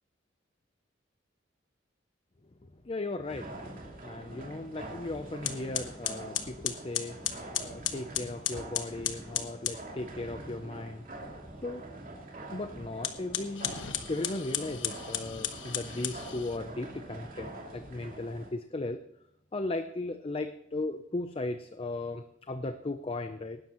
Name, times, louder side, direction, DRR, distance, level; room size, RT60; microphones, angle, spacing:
voice 1, 2.8-3.6 4.0-7.2 7.6-11.0 11.6-11.8 12.5-13.7 14.1-19.0 19.5-23.6, left 2 dB, 30° left, 8 dB, 0.6 m, -36 dB
sound 1, 3.2-18.5, right 2 dB, 50° right, 2.8 m, -45 dB
sound 2, 4.9-5.0 5.4-9.8 12.9-16.6, left 10 dB, 85° left, 1.2 m, -35 dB
19.0 x 12.0 x 3.0 m, 0.79 s
head